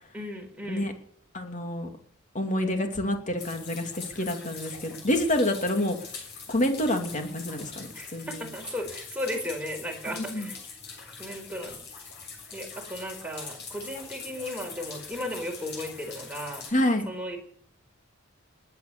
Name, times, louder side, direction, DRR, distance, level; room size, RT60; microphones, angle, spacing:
voice 1, 0.1-0.9 7.9-10.6 11.2-11.8 12.5-16.6 17.1-17.4, left 1 dB, 5° right, 2 dB, 4.5 m, -35 dB
voice 2, 1.3-1.9 2.3-6.0 6.5-8.4 10.1-10.5 16.7-17.1, left 1 dB, 40° left, 5 dB, 2.7 m, -28 dB
sound 1, 3.4-16.7, left 5 dB, 55° left, 6.9 m, -43 dB
20.5 x 9.5 x 6.9 m, 0.64 s
head